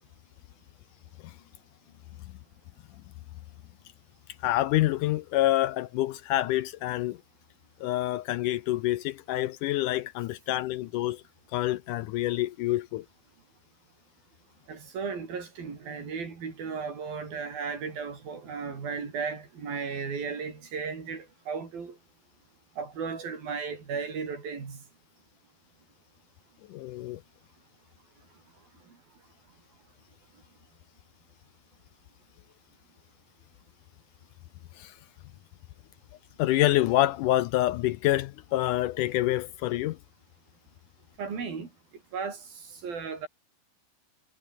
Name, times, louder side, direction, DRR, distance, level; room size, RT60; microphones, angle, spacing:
voice 1, 4.4-7.2 7.8-11.2 11.5-13.1 26.7-27.2 34.8-35.0 36.4-40.0, left 15 dB, 80° left, 1.9 m, -27 dB
voice 2, 14.7-22.0 22.8-24.8 41.2-41.7 42.1-43.3, right 5 dB, 70° right, 7.0 m, -35 dB
omnidirectional pair, 4.4 m